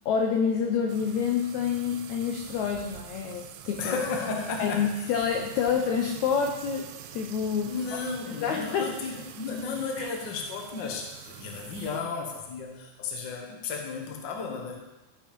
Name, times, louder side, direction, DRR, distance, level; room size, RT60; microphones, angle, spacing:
voice 1, 0.0-4.0 4.6-8.0 8.4-9.0 10.0-10.1, left 6 dB, 90° left, 3 dB, 1.6 m, -28 dB
sound 1, 0.9-12.0, right 10 dB, 80° right, 2.1 m, -45 dB
voice 2, 3.8-5.1 7.7-14.7, left 4 dB, 60° left, 1 dB, 1.2 m, -34 dB
14.5 x 5.2 x 5.3 m, 1.0 s
omnidirectional pair, 4.3 m